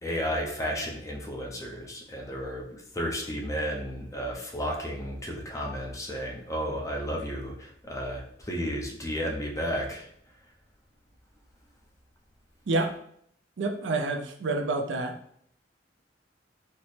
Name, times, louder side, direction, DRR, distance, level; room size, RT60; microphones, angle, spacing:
voice 1, 0.0-10.1, equal, 15° left, 0 dB, 0.5 m, -33 dB
voice 2, 13.6-15.2, right 2 dB, 75° right, 5 dB, 0.4 m, -28 dB
4.2 x 2.0 x 3.2 m, 0.66 s
head